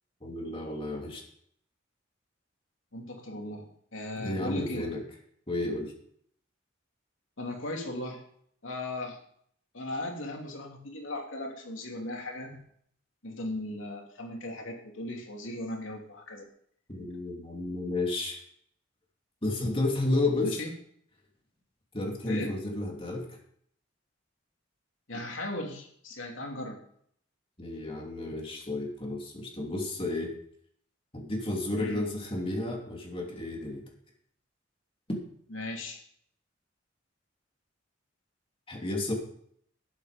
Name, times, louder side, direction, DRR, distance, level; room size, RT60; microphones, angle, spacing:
voice 1, 0.2-1.2 4.2-5.0 5.5-5.9 16.9-18.4 19.4-20.6 21.9-23.4 27.6-30.3 31.1-33.9 38.7-39.1, left 2 dB, 30° left, 0 dB, 3.1 m, -32 dB
voice 2, 2.9-4.9 7.4-8.2 8.6-9.2 9.7-12.6 13.2-16.5 20.4-20.7 22.3-22.5 25.1-26.8 31.8-32.0 35.5-36.0, left 1 dB, 85° left, 1 dB, 3.0 m, -37 dB
12.5 x 10.5 x 5.2 m, 0.65 s
head